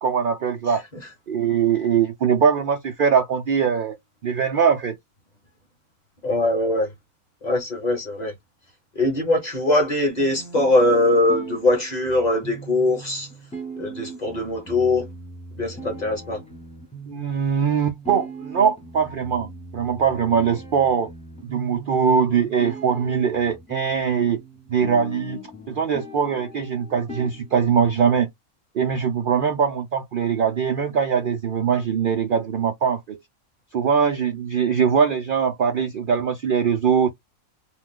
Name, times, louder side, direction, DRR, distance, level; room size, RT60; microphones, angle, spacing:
voice 1, 0.0-0.8 1.3-4.0 4.2-5.0 17.1-21.1 21.4-24.4 24.7-25.4 25.7-28.3 28.7-33.2 33.7-37.1, right 7 dB, 80° right, 0.4 m, -22 dB
voice 2, 6.2-6.9 7.4-8.3 8.9-13.3 13.8-15.1 15.6-16.4, left 2 dB, 30° left, 1.0 m, -21 dB
sound 1, 10.2-28.2, right 2 dB, 10° left, 0.4 m, -39 dB
2.7 x 2.3 x 3.6 m
omnidirectional pair, 1.6 m